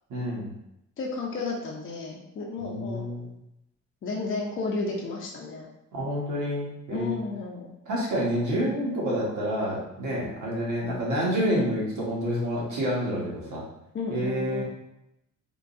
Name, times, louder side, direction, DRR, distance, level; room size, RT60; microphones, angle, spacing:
voice 1, 0.1-0.5 2.6-3.3 5.9-7.2 7.9-13.6 14.1-14.6, equal, 70° right, -5 dB, 1.3 m, -28 dB
voice 2, 1.0-3.0 4.0-5.7 6.9-7.7 13.9-14.6, left 3 dB, 45° left, -2 dB, 0.6 m, -32 dB
3.6 x 2.2 x 2.6 m, 0.84 s
cardioid pair, 90°, 30 cm